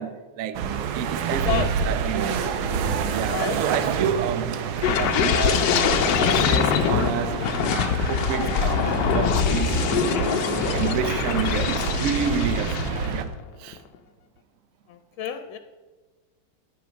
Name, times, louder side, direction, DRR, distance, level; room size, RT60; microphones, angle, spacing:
voice 1, 0.0-2.3 3.1-4.6 4.8-5.7 6.3-10.4 10.7-13.8, right 8 dB, 65° right, 0.8 m, -30 dB
sound 1, 0.5-13.2, right 6 dB, 85° right, 1.6 m, -28 dB
voice 2, 1.3-1.9 3.2-3.6 14.9-15.6, left 10 dB, 85° left, 1.5 m, -30 dB
sound 2, 4.8-13.3 13.7-14.0, left 8 dB, 70° left, 1.2 m, -24 dB
11.5 x 8.7 x 5.1 m
omnidirectional pair, 2.2 m